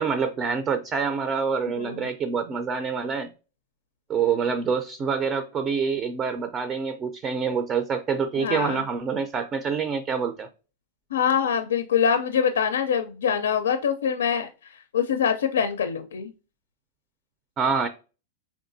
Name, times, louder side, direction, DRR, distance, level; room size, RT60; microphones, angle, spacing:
voice 1, 0.0-3.3 4.1-10.5 17.6-17.9, right 6 dB, 25° right, 0.4 m, -26 dB
voice 2, 1.8-2.1 8.4-8.8 11.1-16.3, left 7 dB, 90° left, 0.4 m, -24 dB
4.6 x 3.5 x 2.6 m
hypercardioid pair, 130°, 0 cm